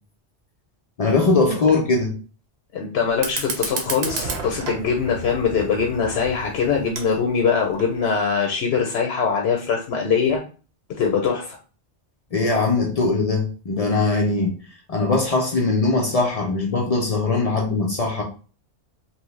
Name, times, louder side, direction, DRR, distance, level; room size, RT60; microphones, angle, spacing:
voice 1, 1.0-2.1 12.3-14.6 14.9-18.2, left 3 dB, 55° left, 0.4 m, -21 dB
voice 2, 2.7-10.4 11.0-11.6, left 6 dB, 80° left, 0.8 m, -22 dB
Fire, 3.1-8.1, right 4 dB, 75° right, 0.9 m, -32 dB
2.9 x 2.0 x 3.0 m
omnidirectional pair, 1.1 m